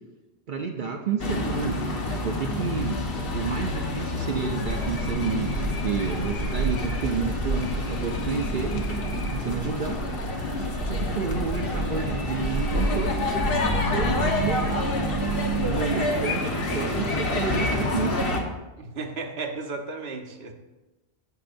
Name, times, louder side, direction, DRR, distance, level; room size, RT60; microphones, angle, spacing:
voice 1, 0.5-1.8 2.2-3.0 3.3-9.0 9.3-10.0 10.9-13.2 13.9-14.9 15.6-18.4, right 5 dB, 55° right, 3 dB, 0.7 m, -30 dB
sound 1, 1.2-18.4, left 2 dB, 60° left, 1.3 m, -28 dB
Gull seagull, 4.6-15.8, right 2 dB, 85° right, 2.3 m, -32 dB
voice 2, 18.8-20.5, right 3 dB, 70° right, 4 dB, 1.2 m, -34 dB
17.5 x 5.9 x 2.6 m, 1.1 s
omnidirectional pair, 1.1 m